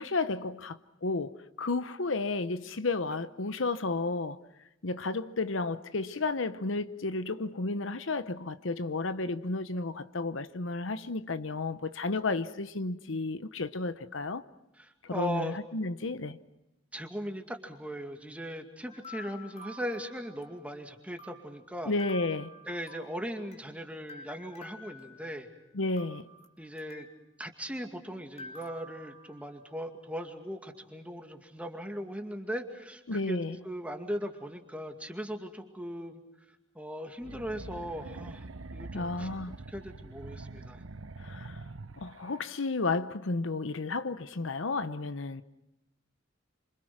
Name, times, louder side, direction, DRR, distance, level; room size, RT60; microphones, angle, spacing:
voice 1, 0.0-4.4 4.8-14.4 15.0-16.4 21.9-22.5 25.7-26.3 33.1-33.6 38.9-39.6 41.2-41.6 42.0-45.4, left 3 dB, 70° left, 0.9 m, -32 dB
voice 2, 14.8-15.6 16.9-21.9 22.7-25.5 26.6-27.1 27.4-33.4 33.6-36.2 36.7-39.3 39.7-40.8, equal, 5° right, 2.3 m, -39 dB
sound 1, 18.9-20.8 21.2-23.7 24.1-25.6 26.0-27.3 28.4-29.8, left 1 dB, 35° left, 2.5 m, -50 dB
sound 2, 37.2-42.4, right 3 dB, 85° right, 0.9 m, -44 dB
28.0 x 26.0 x 6.1 m
head